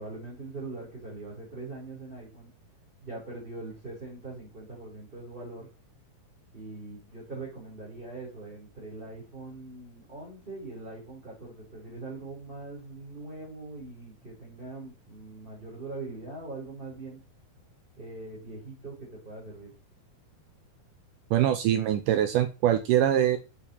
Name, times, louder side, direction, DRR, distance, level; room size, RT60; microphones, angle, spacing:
voice 1, 0.0-2.5 3.0-5.7 6.5-17.2 18.0-19.8, right 3 dB, 15° right, -4 dB, 3.6 m, -42 dB
voice 2, 21.3-23.4, right 11 dB, 80° right, 8 dB, 2.0 m, -23 dB
7.2 x 6.7 x 4.3 m, 0.31 s
omnidirectional pair, 4.3 m